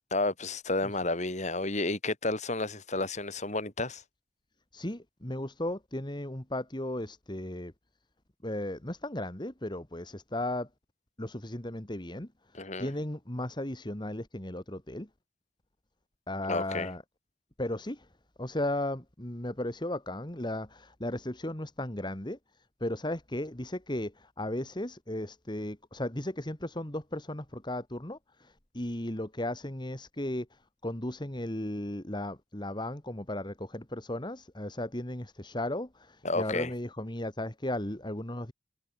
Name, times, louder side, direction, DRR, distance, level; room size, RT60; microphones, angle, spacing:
voice 1, 0.1-4.0 12.5-12.9 16.5-16.9 36.2-36.7, left 2 dB, 40° left, 5.3 m, -31 dB
voice 2, 4.7-7.7 8.4-10.7 11.2-12.3 12.8-15.1 16.3-17.0 17.6-18.1 18.4-22.4 22.8-38.5, left 1 dB, 25° left, 2.3 m, -35 dB
head